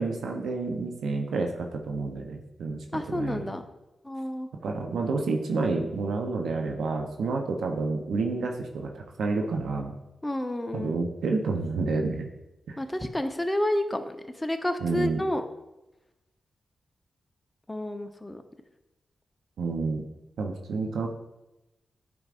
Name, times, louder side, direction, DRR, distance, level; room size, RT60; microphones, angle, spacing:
voice 1, 0.0-3.5 4.6-10.0 10.7-12.3 12.7-12.8 14.8-15.2 19.6-20.0 20.4-21.1, right 3 dB, 85° right, 3 dB, 0.7 m, -29 dB
voice 2, 2.9-3.6 4.0-4.5 10.2-11.0 12.8-15.5 17.7-18.4, left 1 dB, 15° left, 7 dB, 0.8 m, -30 dB
9.3 x 4.7 x 2.5 m, 0.97 s
supercardioid pair, 45°, 0 cm